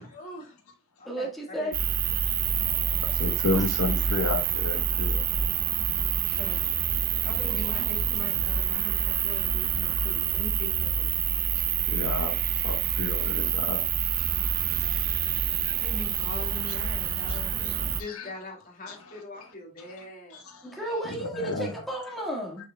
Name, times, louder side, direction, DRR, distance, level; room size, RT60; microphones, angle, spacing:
voice 1, 0.1-0.6 1.0-1.8 4.0-4.1 6.4-6.8 7.2-11.1 15.8-20.4, left 2 dB, 40° left, 2.8 m, -42 dB
voice 2, 1.0-1.8 7.4-8.2 20.6-22.7, right 1 dB, ahead, 1.6 m, -34 dB
sound 1, 1.7-18.0, right 8 dB, 45° right, 0.5 m, -27 dB
voice 3, 2.8-5.2 6.3-6.4 11.6-13.8 14.8-15.1 15.6-15.8 16.7-16.8 17.3-18.3 18.9-19.5 19.8-20.1 20.3-20.8 21.2-21.7, left 3 dB, 75° left, 1.1 m, -33 dB
6.7 x 6.3 x 2.2 m
head